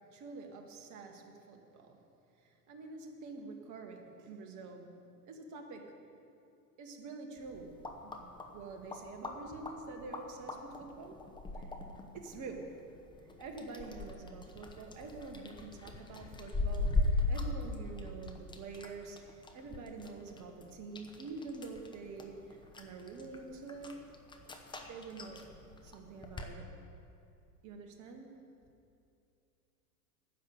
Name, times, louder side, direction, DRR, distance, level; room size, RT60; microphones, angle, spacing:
voice 1, 0.0-2.0 2.4-4.9 5.2-6.0 6.8-11.2 11.5-11.7 12.1-12.8 13.4-24.1 24.8-25.4 25.8-26.7 27.6-28.4, right 3 dB, 40° right, 4 dB, 1.7 m, -47 dB
sound 1, 7.4-26.5, left 2 dB, 10° left, 0.9 m, -40 dB
10.0 x 6.8 x 8.3 m, 2.6 s
hypercardioid pair, 100°, 47 cm